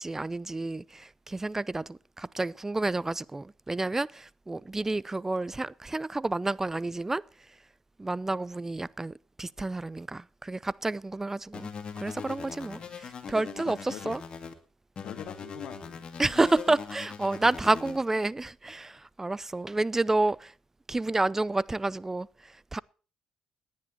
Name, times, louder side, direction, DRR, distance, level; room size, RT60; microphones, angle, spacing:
voice 1, 0.0-7.2 8.0-11.7 12.0-14.2 16.2-20.5 20.9-22.8, right 2 dB, 20° right, 0.5 m, -30 dB
sound 1, 11.5-14.5 15.0-18.0, left 6 dB, 50° left, 2.1 m, -41 dB
voice 2, 13.6-14.1 15.0-16.3, left 10 dB, 70° left, 1.1 m, -44 dB
18.0 x 10.5 x 4.3 m
hypercardioid pair, 55°, 2 cm